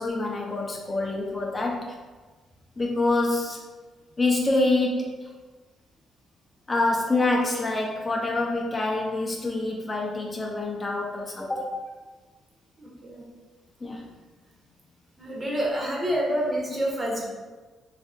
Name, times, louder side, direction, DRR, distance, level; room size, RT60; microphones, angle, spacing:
voice 1, 0.0-1.9 2.8-3.6 4.2-5.1 6.7-11.7 13.8-14.0, left 2 dB, 25° left, -1 dB, 0.4 m, -26 dB
voice 2, 12.8-13.2 15.2-17.2, equal, 25° right, -3 dB, 0.7 m, -28 dB
2.6 x 2.4 x 2.4 m, 1.3 s
cardioid pair, 90°, 0 cm